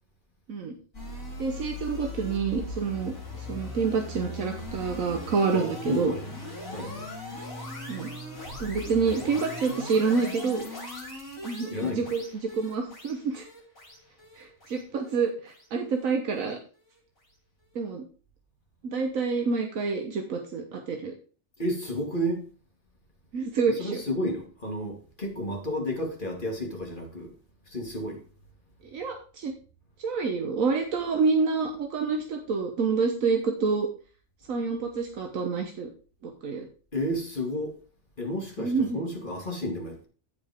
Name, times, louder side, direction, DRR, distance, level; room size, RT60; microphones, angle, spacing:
sound 1, 0.9-16.1, left 1 dB, 85° left, 5.6 m, -39 dB
voice 1, 1.4-6.1 7.9-8.1 8.6-10.6 11.4-13.4 14.4-16.6 17.7-18.0 18.8-21.1 23.3-24.0 28.9-29.5 30.0-33.9 34.5-35.9 36.2-36.7 38.6-39.0, right 5 dB, 80° right, 1.5 m, -28 dB
voice 2, 5.5-6.3 6.7-7.1 11.7-12.0 21.6-22.4 23.7-27.4 27.7-28.2 36.9-37.7 38.2-40.1, equal, 40° left, 2.5 m, -32 dB
15.5 x 5.3 x 3.6 m
omnidirectional pair, 1.4 m